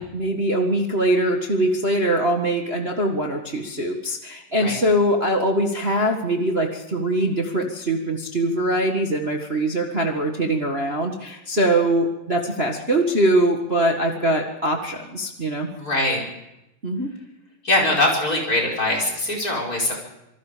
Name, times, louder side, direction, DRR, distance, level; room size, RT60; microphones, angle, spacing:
voice 1, 0.0-15.7 16.8-17.1, right 1 dB, 55° right, 2 dB, 0.6 m, -22 dB
voice 2, 15.8-16.2 17.6-19.9, left 1 dB, 25° left, -1 dB, 5.3 m, -22 dB
27.0 x 19.5 x 5.1 m, 0.90 s
omnidirectional pair, 4.1 m